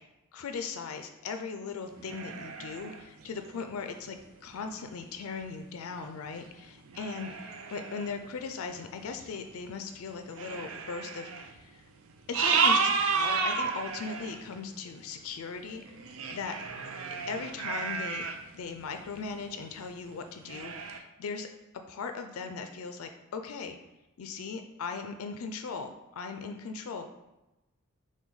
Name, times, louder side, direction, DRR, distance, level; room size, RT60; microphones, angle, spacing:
voice 1, 0.3-11.8 12.3-15.8 16.3-16.5 17.3-18.3 18.5-21.5 21.9-23.8 24.2-27.0, left 5 dB, 90° left, 7 dB, 0.4 m, -38 dB
sound 1, 1.9-4.0 4.9-5.0 5.4-5.5 6.2-6.4 6.9-8.1 9.0-9.1 9.6-9.7 10.3-11.6 12.1-14.5 15.6-18.4 18.8-19.5 19.8-19.9 20.4-21.0, right 5 dB, 75° right, 0.4 m, -31 dB
5.8 x 2.2 x 3.8 m, 1.0 s
head